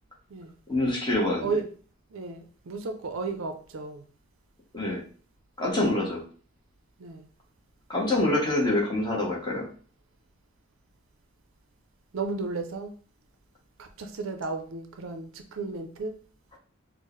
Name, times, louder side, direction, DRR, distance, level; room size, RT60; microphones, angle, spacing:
voice 1, 0.7-1.6 4.7-5.0 5.6-6.2 7.9-9.7, left 1 dB, 20° left, 1.0 m, -26 dB
voice 2, 2.1-4.0 7.0-7.3 12.1-12.9 13.8-16.1, right 4 dB, 65° right, 0.5 m, -33 dB
4.5 x 2.0 x 3.0 m
head